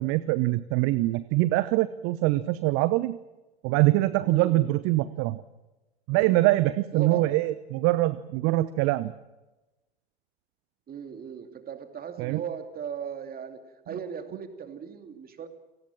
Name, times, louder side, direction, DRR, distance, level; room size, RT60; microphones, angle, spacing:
voice 1, 0.0-3.2 3.6-5.4 6.1-9.1 12.2-12.4, right 18 dB, 45° right, 16 dB, 1.0 m, -24 dB
voice 2, 4.2-4.7 6.9-7.4 10.9-15.5, right 7 dB, 30° right, 8 dB, 2.8 m, -38 dB
29.5 x 19.0 x 7.5 m, 1.1 s
figure-of-eight pair, 80°, 32 cm